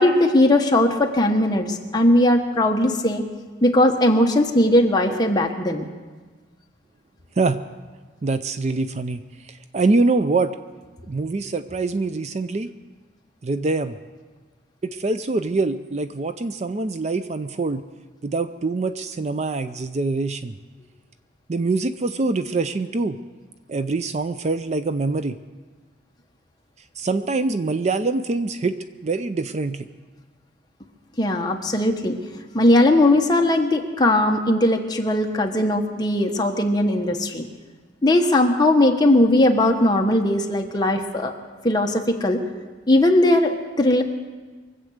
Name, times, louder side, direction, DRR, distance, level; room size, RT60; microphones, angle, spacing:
voice 1, 0.0-3.3 3.6-5.8 31.2-32.2 32.5-37.5 38.0-41.3 41.6-42.4 42.9-44.0, left 1 dB, 20° left, 2 dB, 1.2 m, -19 dB
voice 2, 8.2-10.5 11.1-12.7 13.4-13.9 14.8-17.8 18.2-20.5 21.5-23.2 23.7-25.4 27.0-28.8 29.0-29.9, right 3 dB, 35° right, 11 dB, 0.4 m, -24 dB
23.5 x 8.1 x 6.5 m, 1.4 s
head